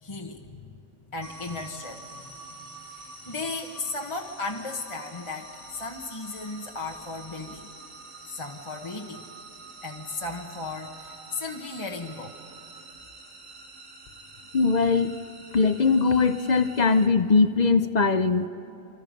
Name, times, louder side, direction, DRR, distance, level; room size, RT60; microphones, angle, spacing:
voice 1, 0.0-0.8 1.1-7.7 8.3-9.3 9.8-12.4, left 3 dB, 25° left, 1 dB, 1.1 m, -36 dB
sound 1, 1.2-17.1, right 2 dB, 50° right, 2.4 m, -46 dB
voice 2, 14.5-15.1 15.5-18.5, left 4 dB, 50° left, 11 dB, 0.5 m, -21 dB
28.0 x 25.5 x 5.2 m, 2.8 s
omnidirectional pair, 1.3 m